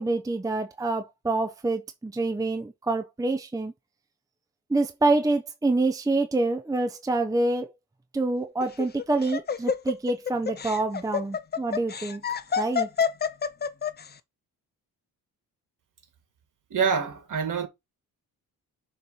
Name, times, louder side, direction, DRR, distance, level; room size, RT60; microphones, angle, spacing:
voice 1, 0.0-3.7 4.7-7.7 8.1-12.2 12.6-12.9, right 2 dB, 10° right, 0.7 m, -26 dB
Laughter, 8.6-14.1, left 6 dB, 25° left, 0.6 m, -28 dB
voice 2, 16.7-17.7, right 6 dB, 55° right, 2.0 m, -26 dB
6.5 x 3.2 x 5.5 m
cardioid pair, 105°, 38 cm